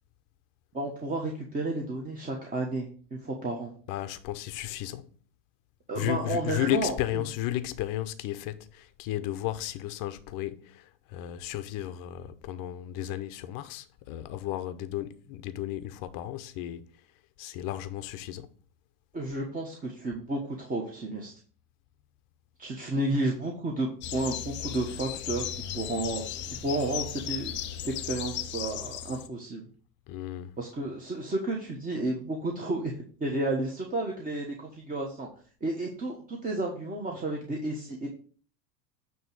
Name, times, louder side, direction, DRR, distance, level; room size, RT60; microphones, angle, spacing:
voice 1, 0.7-3.7 5.9-6.9 19.1-21.3 22.6-29.6 30.6-35.3 35.6-38.1, right 2 dB, 15° right, 1.2 m, -32 dB
voice 2, 3.9-5.1 5.9-16.9 17.4-18.5 30.1-30.5, left 13 dB, 40° left, 0.8 m, -34 dB
sound 1, 24.0-29.3, left 10 dB, 25° left, 0.4 m, -36 dB
9.2 x 3.1 x 6.1 m
hypercardioid pair, 110°, 50 cm